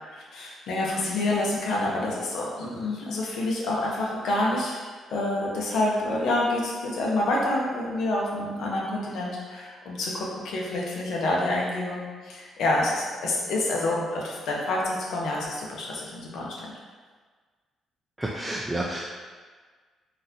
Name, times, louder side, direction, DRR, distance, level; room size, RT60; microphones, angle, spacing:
voice 1, 0.0-16.7, left 2 dB, 75° left, -3 dB, 0.7 m, -28 dB
voice 2, 18.2-19.1, right 1 dB, 10° right, -4 dB, 0.3 m, -30 dB
3.9 x 2.5 x 2.7 m, 1.5 s
cardioid pair, 90°, 0 cm